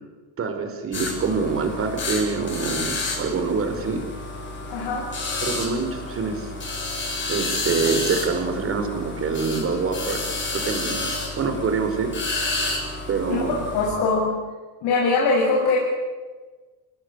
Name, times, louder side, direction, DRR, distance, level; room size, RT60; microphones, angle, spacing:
voice 1, 0.4-4.0 5.4-6.5 7.3-10.2 10.5-12.2 13.1-13.6, right 4 dB, 35° right, 6 dB, 4.8 m, -25 dB
sound 1, 0.9-13.9, left 2 dB, 30° left, 6.7 m, -30 dB
voice 2, 4.7-5.0 13.3-13.4 13.7-14.3 14.8-15.8, left 4 dB, 80° left, -3 dB, 7.5 m, -21 dB
29.0 x 19.0 x 9.9 m, 1.3 s
cardioid pair, 165°, 39 cm